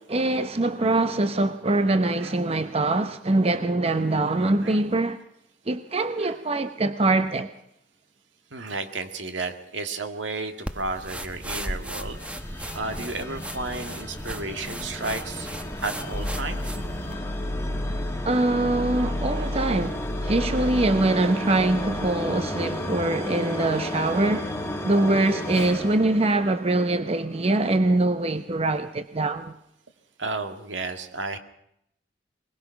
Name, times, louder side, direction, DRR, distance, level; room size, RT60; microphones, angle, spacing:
voice 1, 0.0-5.2 5.7-7.5 18.2-24.5 24.8-29.5, right 2 dB, 35° right, 0.7 m, -23 dB
voice 2, 8.5-12.2 12.5-15.5 15.8-16.6 30.2-31.4, right 3 dB, 80° right, 2.0 m, -32 dB
sound 1, 10.7-17.2, right 1 dB, 5° right, 1.0 m, -36 dB
sound 2, 10.8-27.0, left 1 dB, 15° left, 1.6 m, -34 dB
sound 3, 16.1-22.1, left 1 dB, 60° left, 1.4 m, -32 dB
21.5 x 20.5 x 5.8 m
head